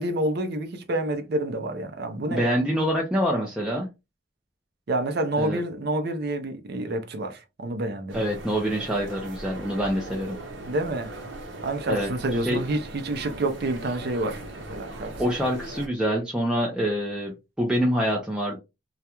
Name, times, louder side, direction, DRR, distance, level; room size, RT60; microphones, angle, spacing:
voice 1, 0.0-2.6 4.9-8.2 10.7-11.1 11.6-14.4 14.7-15.1, right 1 dB, 55° right, 0.5 m, -28 dB
voice 2, 2.3-3.9 5.4-5.6 8.1-10.4 11.9-12.6 15.2-18.6, equal, 5° right, 0.4 m, -26 dB
sound 1, 8.1-15.9, right 1 dB, 75° right, 0.8 m, -39 dB
2.3 x 2.2 x 2.8 m
head